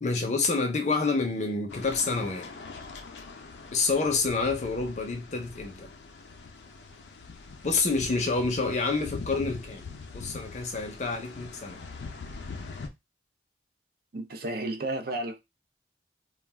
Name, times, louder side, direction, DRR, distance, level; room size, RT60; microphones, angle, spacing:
voice 1, 0.0-2.5 3.7-5.9 7.6-9.9 10.1-11.8, left 4 dB, 40° left, 0.6 m, -28 dB
sound 1, 1.7-12.9, left 4 dB, 85° left, 0.5 m, -43 dB
voice 2, 14.1-15.4, right 2 dB, 55° right, 0.5 m, -32 dB
2.3 x 2.2 x 3.3 m
head